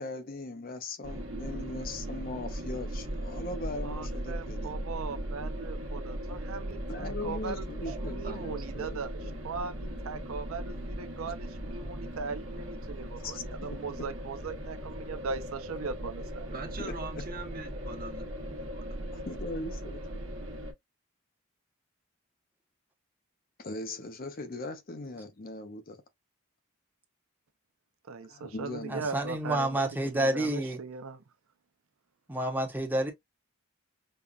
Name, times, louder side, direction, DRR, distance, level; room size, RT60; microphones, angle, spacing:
voice 1, 0.0-4.9 6.9-9.4 11.3-11.4 13.2-14.1 16.8-16.9 19.1-20.0 23.6-26.0 28.3-29.1, left 2 dB, 45° left, 0.6 m, -40 dB
sound 1, 1.0-20.7, right 1 dB, 70° right, 1.0 m, -38 dB
voice 2, 3.8-16.5 28.1-31.2, right 5 dB, 85° right, 0.6 m, -39 dB
voice 3, 7.8-8.9 16.5-18.2 18.6-19.0, right 3 dB, 45° right, 1.0 m, -43 dB
voice 4, 28.9-30.8 32.3-33.1, right 1 dB, 10° right, 0.9 m, -29 dB
5.3 x 2.3 x 2.4 m
head